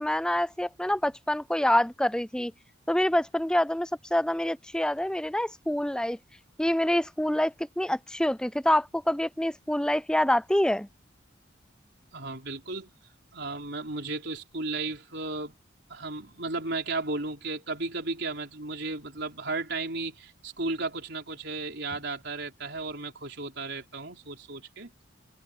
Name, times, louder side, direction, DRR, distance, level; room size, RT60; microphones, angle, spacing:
voice 1, 0.0-2.5 2.9-6.2 6.6-10.9, left 1 dB, 5° left, 0.4 m, -26 dB
voice 2, 12.1-12.9 13.3-15.5 15.9-24.9, right 3 dB, 60° right, 4.6 m, -34 dB
head